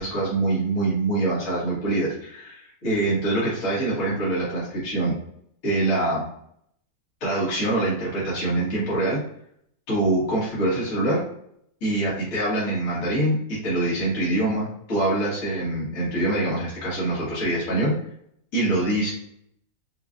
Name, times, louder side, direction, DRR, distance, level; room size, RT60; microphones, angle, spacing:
voice 1, 0.0-5.1 5.6-6.2 7.2-9.2 9.9-11.2 11.8-17.9 18.5-19.1, right 2 dB, 60° left, -8 dB, 1.9 m, -24 dB
5.3 x 2.3 x 2.5 m, 0.69 s
omnidirectional pair, 1.6 m